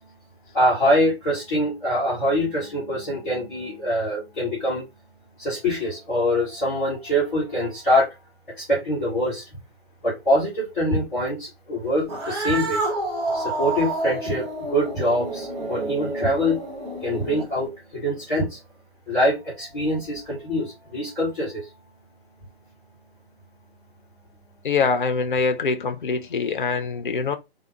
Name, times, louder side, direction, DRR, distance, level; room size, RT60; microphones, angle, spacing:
voice 1, 0.5-4.8 5.4-8.1 8.6-9.4 10.0-12.8 13.3-18.6 19.1-21.6, equal, 5° left, 0.6 m, -24 dB
Cat, 12.0-17.7, right 2 dB, 25° right, 1.0 m, -29 dB
voice 2, 24.6-27.4, left 4 dB, 50° left, 0.5 m, -24 dB
3.4 x 2.2 x 2.8 m
figure-of-eight pair, 140°, 32 cm